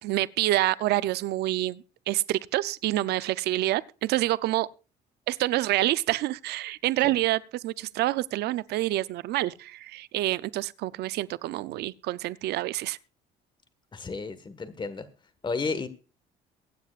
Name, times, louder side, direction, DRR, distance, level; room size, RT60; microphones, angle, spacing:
voice 1, 0.0-4.7 5.3-13.0, right 16 dB, 75° right, 0.6 m, -27 dB
voice 2, 13.9-15.1 15.4-15.9, left 4 dB, 25° left, 1.6 m, -32 dB
23.0 x 9.3 x 2.5 m
cardioid pair, 110°, 17 cm